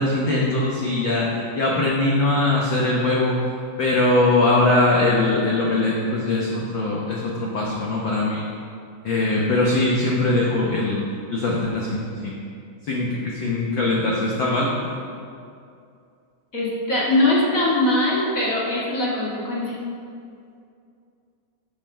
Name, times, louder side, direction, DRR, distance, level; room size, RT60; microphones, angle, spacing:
voice 1, 0.0-3.4 3.8-8.4 9.0-11.0 11.3-12.4 12.8-14.7, left 2 dB, 85° left, -3 dB, 1.0 m, -21 dB
voice 2, 16.5-19.7, left 1 dB, 35° left, -7 dB, 1.5 m, -21 dB
10.5 x 5.6 x 5.5 m, 2.4 s
omnidirectional pair, 3.6 m